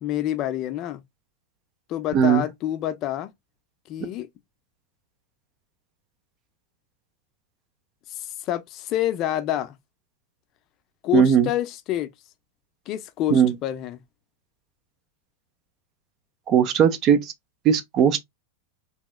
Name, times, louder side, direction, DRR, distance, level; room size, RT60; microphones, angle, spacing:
voice 1, 0.0-1.0 1.9-3.3 3.9-4.3 8.1-9.8 11.0-12.1 12.9-14.0, left 12 dB, 40° left, 0.4 m, -27 dB
voice 2, 2.1-2.5 11.1-11.5 13.3-13.5 16.5-17.3 17.6-18.2, right 8 dB, 35° right, 0.5 m, -18 dB
3.0 x 2.9 x 2.2 m
supercardioid pair, 135°, 0 cm